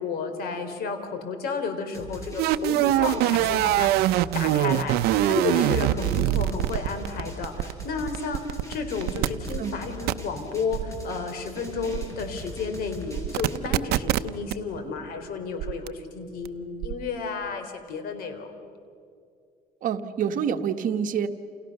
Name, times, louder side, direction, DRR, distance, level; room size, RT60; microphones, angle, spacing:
voice 1, 0.0-18.5, left 4 dB, 70° left, 7 dB, 4.1 m, -32 dB
Drum, 1.9-13.6, left 1 dB, 20° left, 6.0 m, -41 dB
sound 1, 2.4-8.7 9.0-9.6 10.1-10.2 10.7-11.0 11.9-12.2 13.2-14.5 15.6-15.9 16.5-16.6 16.8-17.1, right 14 dB, 85° right, 0.7 m, -23 dB
voice 2, 19.8-21.3, right 8 dB, 60° right, 7 dB, 1.5 m, -27 dB
29.5 x 29.5 x 6.7 m, 2.4 s
cardioid pair, 125°, 16 cm